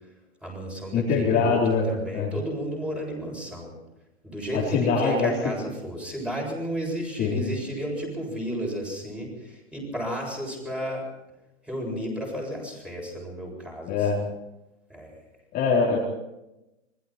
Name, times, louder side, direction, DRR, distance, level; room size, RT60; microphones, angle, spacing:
voice 1, 0.4-3.7 4.2-11.0 11.7-14.1 14.9-15.1, equal, 5° right, -1 dB, 7.4 m, -32 dB
voice 2, 0.9-1.9 2.1-2.3 4.5-5.3 7.2-7.4 13.9-14.2 15.5-16.0, left 5 dB, 25° left, -4 dB, 4.1 m, -23 dB
26.5 x 21.5 x 4.5 m, 0.93 s
hypercardioid pair, 145°, 37 cm